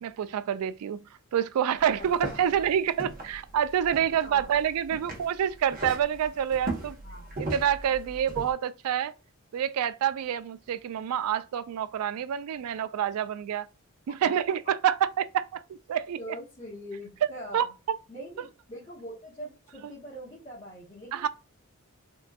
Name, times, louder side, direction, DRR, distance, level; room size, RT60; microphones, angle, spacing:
voice 1, 0.0-1.0 1.3-7.0 7.4-9.1 9.5-13.7 14.1-16.2 17.2-17.7 21.1-21.3, right 9 dB, 85° right, 0.3 m, -27 dB
sound 1, 1.8-8.5, right 2 dB, 40° right, 0.8 m, -39 dB
voice 2, 1.9-2.5 4.2-4.6 7.0-7.5 14.1-14.5 16.2-17.7 18.1-21.3, equal, 30° left, 1.2 m, -43 dB
3.7 x 2.5 x 2.2 m
head